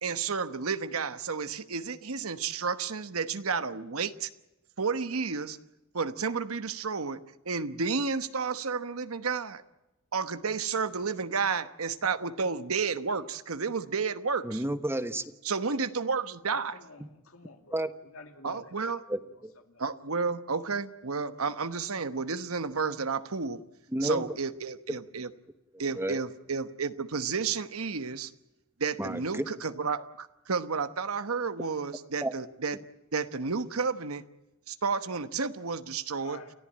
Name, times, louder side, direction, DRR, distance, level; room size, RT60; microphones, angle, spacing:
voice 1, 0.0-4.3 4.8-5.6 5.9-9.6 10.1-14.6 15.4-16.8 18.4-19.0 19.8-23.6 24.0-25.3 25.8-28.3 28.8-32.8 33.1-34.2 34.7-36.4, right 5 dB, 90° right, 11 dB, 1.1 m, -31 dB
voice 2, 14.4-15.2 17.7-17.9 19.1-19.5 23.9-24.2 25.9-26.2 29.0-29.4 32.2-32.3, right 1 dB, 10° right, 11 dB, 1.2 m, -31 dB
voice 3, 16.7-17.8 18.1-18.7 19.7-19.8 36.2-36.5, left 3 dB, 75° left, 6 dB, 2.6 m, -49 dB
29.5 x 14.5 x 8.8 m, 0.97 s
head